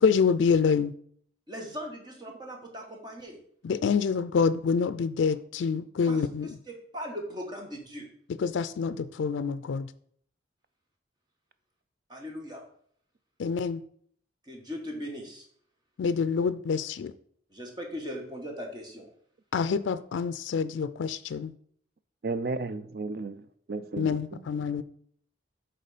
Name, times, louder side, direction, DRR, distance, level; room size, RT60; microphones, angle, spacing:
voice 1, 0.0-0.9 3.6-6.5 8.4-9.9 13.4-13.8 16.0-17.1 19.5-21.5 24.0-24.8, left 5 dB, 80° left, 14 dB, 0.4 m, -26 dB
voice 2, 1.5-3.4 6.1-6.2 6.7-8.1 12.1-12.6 14.5-15.5 17.5-19.1, equal, 25° right, 1 dB, 1.2 m, -39 dB
voice 3, 22.2-24.4, right 3 dB, 55° right, 13 dB, 0.4 m, -34 dB
6.7 x 3.8 x 5.0 m, 0.62 s
head